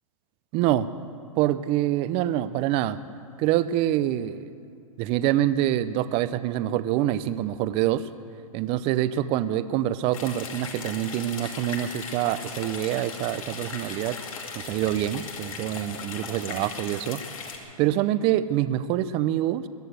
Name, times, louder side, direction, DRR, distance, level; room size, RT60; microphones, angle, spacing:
voice 1, 0.5-0.9 1.4-3.0 3.4-4.5 5.0-8.1 8.5-14.2 14.5-17.2 17.8-19.7, right 13 dB, 30° right, 14 dB, 0.6 m, -25 dB
sound 1, 10.1-17.6, left 5 dB, 70° left, 2.6 m, -38 dB
22.0 x 8.3 x 8.0 m, 2.4 s
hypercardioid pair, 140°, 18 cm